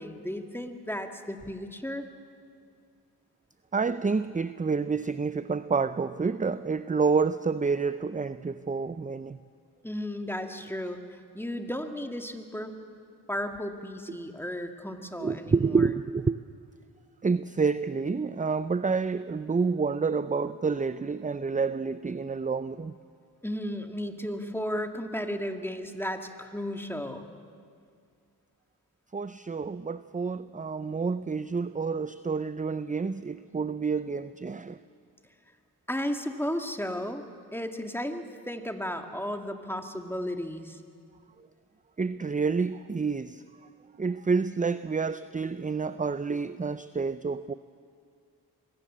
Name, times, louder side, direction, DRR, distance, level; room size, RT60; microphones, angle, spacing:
voice 1, 0.0-2.1 9.8-12.7 13.3-15.9 23.4-27.4 35.9-37.2 37.5-40.8, equal, 5° left, 5 dB, 2.1 m, -34 dB
voice 2, 3.7-9.4 15.2-16.4 17.2-22.9 29.1-34.8 42.0-43.4 44.0-47.5, right 4 dB, 20° right, 14 dB, 0.5 m, -28 dB
24.0 x 17.0 x 7.5 m, 2.2 s
cardioid pair, 45°, 39 cm